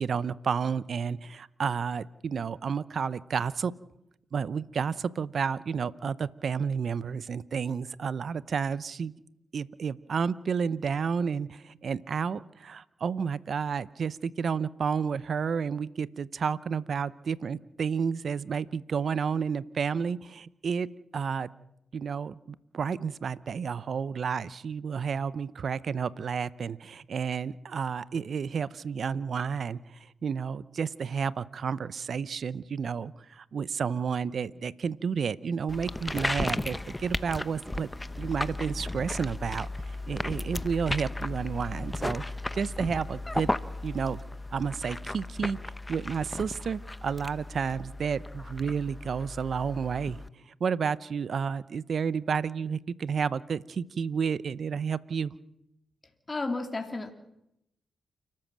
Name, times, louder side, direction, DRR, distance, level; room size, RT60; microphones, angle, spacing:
voice 1, 0.0-3.7 4.3-9.1 9.5-20.9 21.1-21.5 21.9-22.4 22.7-37.9 38.2-42.2 42.5-43.5 43.8-44.2 44.5-45.6 45.9-55.4, right 6 dB, 65° right, 18 dB, 0.7 m, -31 dB
sound 1, 35.7-50.3, left 2 dB, 15° left, 1.0 m, -35 dB
voice 2, 56.3-57.1, left 3 dB, 30° left, 4 dB, 2.8 m, -32 dB
29.0 x 13.5 x 7.5 m, 0.82 s
cardioid pair, 55°, 0 cm